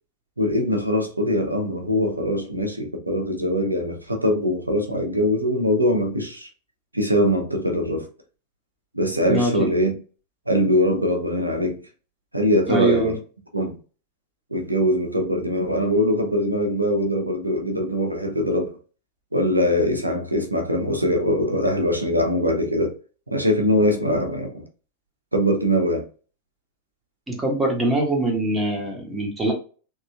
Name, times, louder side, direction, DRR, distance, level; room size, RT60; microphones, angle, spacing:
voice 1, 0.4-6.5 6.9-8.1 8.9-10.0 10.5-11.8 12.3-13.1 13.5-13.8 14.5-18.7 19.3-23.0 23.3-24.6 25.3-26.0, equal, 85° right, 0.8 m, -22 dB
voice 2, 9.3-9.7 12.7-13.1 27.3-29.5, right 2 dB, 10° right, 1.3 m, -23 dB
3.6 x 3.0 x 2.2 m
figure-of-eight pair, 90°, 0 cm